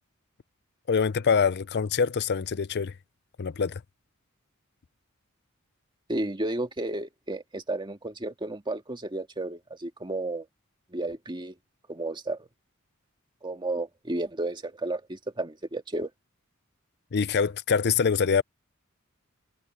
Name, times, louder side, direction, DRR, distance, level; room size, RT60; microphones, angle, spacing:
voice 1, 0.9-2.9 3.4-3.8 17.1-18.4, left 6 dB, 50° left, 0.5 m, -24 dB
voice 2, 6.1-10.5 10.9-11.6 11.9-12.5 13.4-16.1, right 2 dB, 20° right, 2.0 m, -32 dB
head